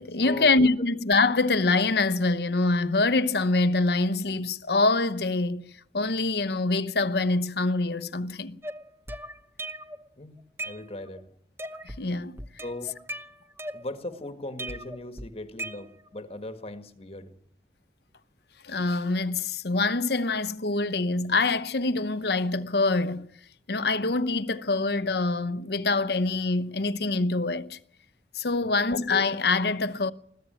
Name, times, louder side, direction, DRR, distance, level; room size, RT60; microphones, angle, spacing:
voice 1, 0.0-8.6 11.8-12.4 18.6-23.3 23.7-27.8 28.3-30.1, left 3 dB, 65° left, 0.9 m, -25 dB
sound 1, 8.6-10.0 10.4-11.2 11.6-12.1 12.4-14.2 14.6-16.2, right 1 dB, 15° right, 0.9 m, -38 dB
voice 2, 10.6-11.2 12.6-12.9 13.7-17.3 28.6-28.9, left 1 dB, 35° left, 1.5 m, -38 dB
21.0 x 14.5 x 9.0 m
head